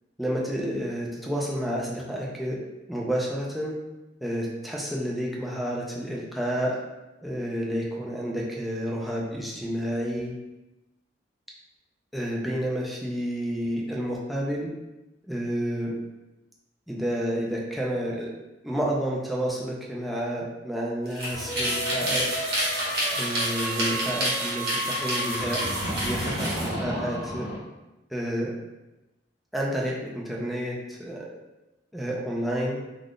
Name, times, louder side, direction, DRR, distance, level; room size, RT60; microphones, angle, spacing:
voice 1, 0.2-2.6 2.9-3.7 4.2-6.8 7.2-10.3 12.1-14.7 15.2-15.9 16.9-18.3 18.6-22.4 23.2-25.6 26.0-27.5 28.1-28.5 29.5-31.3 31.9-32.8, equal, ahead, -4 dB, 0.5 m, -30 dB
sound 1, 21.1-26.7, right 1 dB, 55° right, 1.0 m, -29 dB
sound 2, 21.3-27.6, right 1 dB, 75° right, 0.8 m, -32 dB
2.4 x 2.4 x 3.5 m, 1.0 s
head